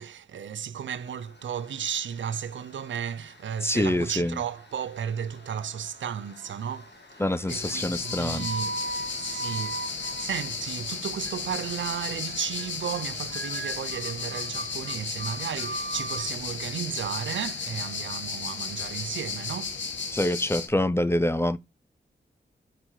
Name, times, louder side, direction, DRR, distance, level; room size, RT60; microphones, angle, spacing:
voice 1, 0.0-8.8 9.1-19.8, right 8 dB, 85° right, 0.5 m, -34 dB
Tools, 0.9-20.2, left 3 dB, 65° left, 2.0 m, -54 dB
voice 2, 3.6-4.4 7.2-8.5 20.1-21.6, left 1 dB, 15° left, 0.6 m, -25 dB
sound 1, 5.4-6.0 6.4-6.9 7.6-10.9 11.2-11.6 12.0-12.3 12.6-13.0 13.3-16.3, right 2 dB, 65° right, 1.2 m, -38 dB
sound 2, 7.5-20.7, left 5 dB, 80° left, 1.4 m, -34 dB
5.1 x 4.4 x 4.4 m
cardioid pair, 40°, 19 cm